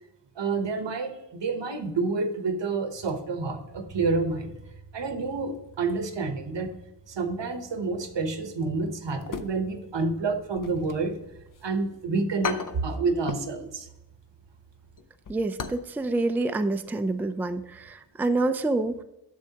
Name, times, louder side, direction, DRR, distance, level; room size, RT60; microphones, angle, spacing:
voice 1, 0.4-4.6 4.9-6.7 7.1-11.2 11.6-13.9, right 3 dB, 80° right, 8 dB, 0.9 m, -29 dB
sound 1, 9.2-10.0 10.3-11.6 12.0-12.1 12.4-13.6 13.8-14.1 14.5-15.9 16.2-16.3 16.8-17.0 17.2-17.3, left 5 dB, 50° left, 0.6 m, -36 dB
voice 2, 15.3-19.0, right 2 dB, 5° right, 9 dB, 0.3 m, -27 dB
10.5 x 6.5 x 2.8 m, 0.91 s
wide cardioid pair, 70°, 42 cm